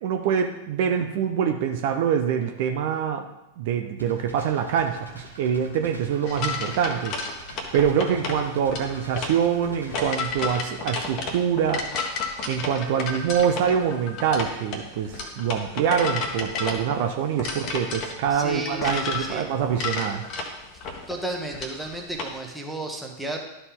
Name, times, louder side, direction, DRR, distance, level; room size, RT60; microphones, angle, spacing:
voice 1, 0.0-3.3 3.6-7.2 7.7-11.8 12.5-20.3, right 8 dB, 50° right, 5 dB, 0.7 m, -25 dB
sound 1, 4.0-10.2, right 1 dB, 80° left, 2.0 m, -45 dB
sound 2, 6.3-22.4, left 3 dB, 40° left, 1.2 m, -32 dB
voice 2, 18.3-19.4 21.1-23.4, right 1 dB, ahead, 0 dB, 1.3 m, -33 dB
12.5 x 4.1 x 3.8 m, 0.91 s
figure-of-eight pair, 90°, 0 cm